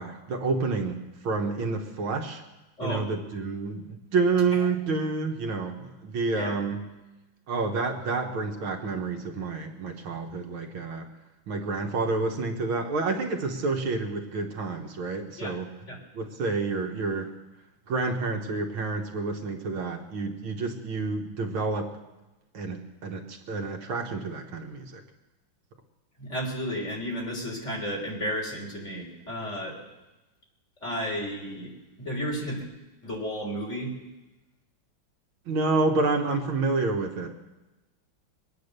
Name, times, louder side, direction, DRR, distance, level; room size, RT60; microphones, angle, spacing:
voice 1, 0.0-2.4 2.8-6.8 7.5-11.1 11.5-15.7 16.1-17.3 17.9-21.9 22.5-25.0 35.5-37.3, right 3 dB, 70° right, 3 dB, 2.1 m, -29 dB
voice 2, 26.2-29.8 30.8-31.7 32.0-32.7 33.0-33.9, equal, 35° left, -1 dB, 3.9 m, -32 dB
23.0 x 9.3 x 6.7 m, 1.1 s
omnidirectional pair, 2.3 m